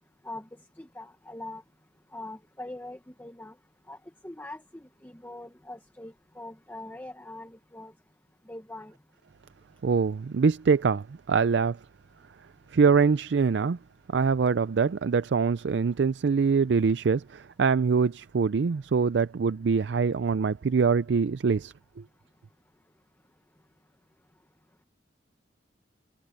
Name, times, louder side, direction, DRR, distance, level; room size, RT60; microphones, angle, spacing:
voice 1, 0.8-1.6 2.1-3.5 3.9-4.0 4.2-7.9 8.5-8.9, left 1 dB, 10° left, 1.1 m, -42 dB
voice 2, 9.8-11.8 12.7-13.8 14.1-21.7, right 5 dB, 65° right, 0.4 m, -24 dB
head